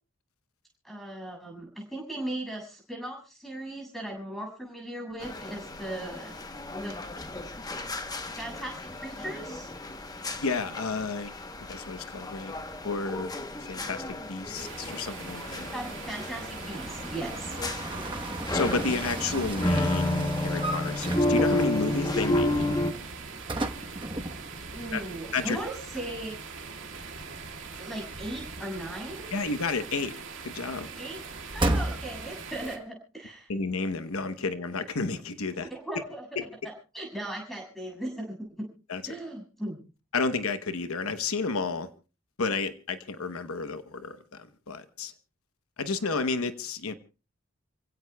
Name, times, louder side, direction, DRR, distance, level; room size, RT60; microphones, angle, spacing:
voice 1, 0.8-6.3 6.8-7.0 8.4-9.7 15.7-17.5 24.7-26.4 27.8-29.3 31.0-31.2 31.5-33.5 35.6-36.4 36.6-38.6 39.1-39.8, right 1 dB, ahead, 6.9 m, -38 dB
sound 1, 5.2-22.9, left 1 dB, 20° left, 1.0 m, -32 dB
voice 2, 10.4-11.3 11.7-12.5 12.8-13.3 13.6-15.7 18.5-22.7 24.9-25.0 25.3-25.6 29.3-30.1 30.4-30.9 33.5-35.7 36.4-36.5 38.9-39.1 40.1-41.9 42.4-45.1 45.8-46.9, left 4 dB, 85° left, 1.0 m, -31 dB
sound 2, 14.5-32.8, right 4 dB, 60° right, 2.3 m, -42 dB
sound 3, 14.9-25.2 25.4-25.5 31.6-32.5, right 1 dB, 20° right, 1.1 m, -35 dB
29.0 x 16.5 x 2.3 m
head